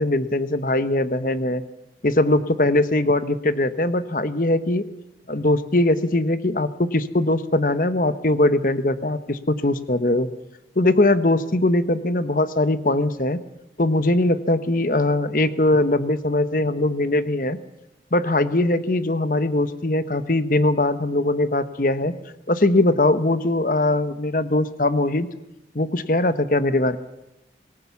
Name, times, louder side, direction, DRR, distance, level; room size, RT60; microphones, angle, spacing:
voice 1, 0.0-1.6 2.0-4.8 5.3-10.3 10.8-13.4 13.8-17.6 18.1-22.1 22.5-25.3 25.7-27.0, left 2 dB, 50° left, 12 dB, 1.1 m, -21 dB
26.5 x 19.0 x 7.2 m, 0.94 s
head